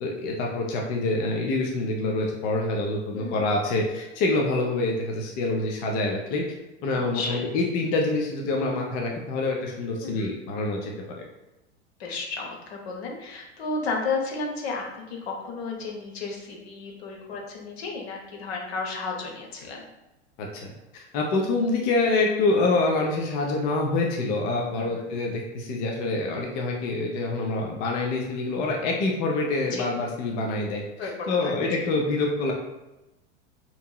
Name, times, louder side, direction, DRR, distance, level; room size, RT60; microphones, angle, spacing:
voice 1, 0.0-6.4 6.8-10.9 20.4-32.5, left 2 dB, 25° left, 0 dB, 0.3 m, -26 dB
voice 2, 3.1-3.5 6.9-7.5 10.0-10.4 12.0-19.9 24.8-25.1 29.7-29.9 31.0-31.5, left 4 dB, 60° left, 0 dB, 0.8 m, -33 dB
2.9 x 2.6 x 2.2 m, 1.0 s
figure-of-eight pair, 90°, 36 cm